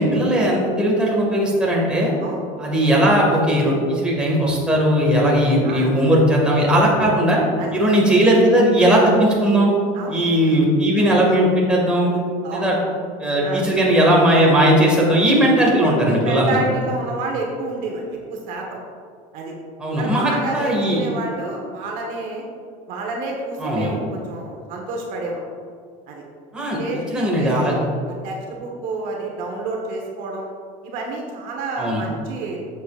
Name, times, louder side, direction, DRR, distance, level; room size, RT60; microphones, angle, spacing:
voice 1, 0.0-2.1 2.6-7.4 7.7-9.7 10.1-12.1 12.5-12.8 13.2-16.6 19.8-21.0 23.6-23.9 26.5-26.8 27.1-27.8 31.8-32.0, equal, 5° right, -4 dB, 2.1 m, -17 dB
voice 2, 12.4-12.8 13.4-13.6 16.1-18.8 19.3-19.5 20.0-22.4 22.9-25.4 26.1-26.2 26.5-27.8 28.2-30.5 30.8-32.6, right 2 dB, 55° right, 0 dB, 1.4 m, -29 dB
11.5 x 7.3 x 2.5 m, 2.2 s
supercardioid pair, 140°, 16 cm